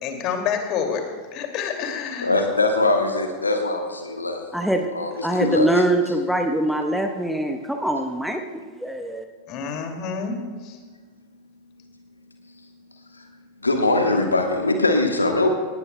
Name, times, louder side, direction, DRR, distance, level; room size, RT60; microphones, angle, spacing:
voice 1, 0.0-1.0 1.3-2.3 5.3-5.4 9.5-10.4 10.6-10.8, left 7 dB, 40° left, 4 dB, 2.4 m, -28 dB
voice 2, 2.2-4.4 4.9-5.7 13.6-15.5, left 2 dB, 80° left, 4 dB, 1.3 m, -21 dB
voice 3, 4.5-4.9 5.2-8.4 8.8-9.3, right 1 dB, ahead, 5 dB, 0.9 m, -23 dB
18.5 x 18.0 x 2.2 m, 1.5 s
figure-of-eight pair, 90°, 0 cm